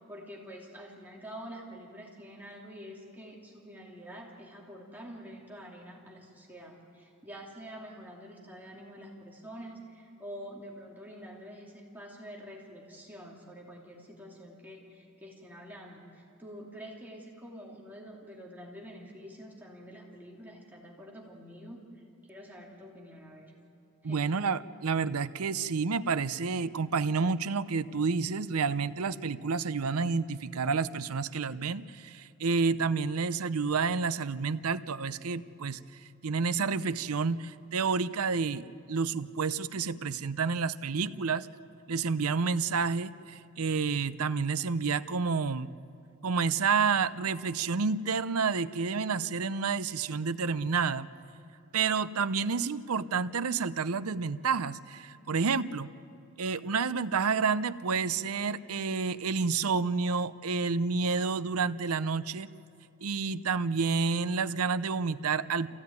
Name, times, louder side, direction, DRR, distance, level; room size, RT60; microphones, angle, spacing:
voice 1, 0.0-22.0 22.3-23.5 24.0-24.3, equal, 10° right, -3 dB, 2.9 m, -47 dB
voice 2, 24.0-35.8 36.2-41.5 41.9-45.7 46.2-51.1 51.7-55.9 56.4-62.5 63.0-65.7, right 5 dB, 90° right, 14 dB, 0.7 m, -29 dB
27.5 x 16.0 x 9.5 m, 2.6 s
head